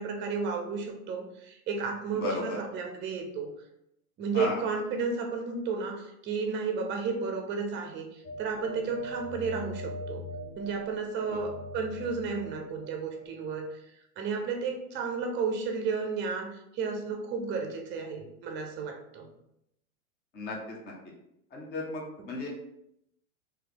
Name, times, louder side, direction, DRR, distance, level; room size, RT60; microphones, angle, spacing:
voice 1, 0.0-3.5 4.2-10.3 10.6-13.7 14.2-19.3 22.2-22.3, right 5 dB, 25° right, 4 dB, 0.7 m, -33 dB
voice 2, 2.2-2.6 4.3-4.6 11.3-11.4 20.3-20.6 21.5-22.5, left 2 dB, 25° left, -2 dB, 0.9 m, -34 dB
sound 1, 8.2-13.2, right 1 dB, 40° left, 1.1 m, -41 dB
3.1 x 3.0 x 3.9 m, 0.79 s
hypercardioid pair, 120°, 44 cm